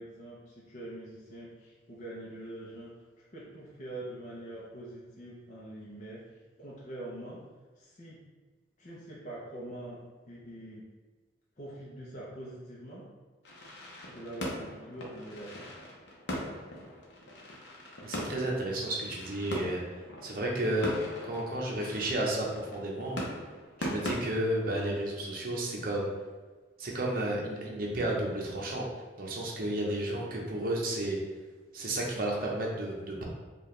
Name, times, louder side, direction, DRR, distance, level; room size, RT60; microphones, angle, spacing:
voice 1, 0.0-2.9 3.3-6.2 6.6-7.4 7.8-8.2 8.8-10.8 11.6-13.1 14.1-15.8 29.7-30.3, right 1 dB, 40° left, -6 dB, 0.7 m, -44 dB
sound 1, 13.4-24.1, equal, 70° left, 0.8 m, -40 dB
voice 2, 18.0-19.8 20.2-20.9 21.2-23.2 23.8-26.1 26.8-28.9 29.2-31.2 31.7-33.2, right 1 dB, 50° right, -2 dB, 0.8 m, -32 dB
4.6 x 2.4 x 3.2 m, 1.3 s
head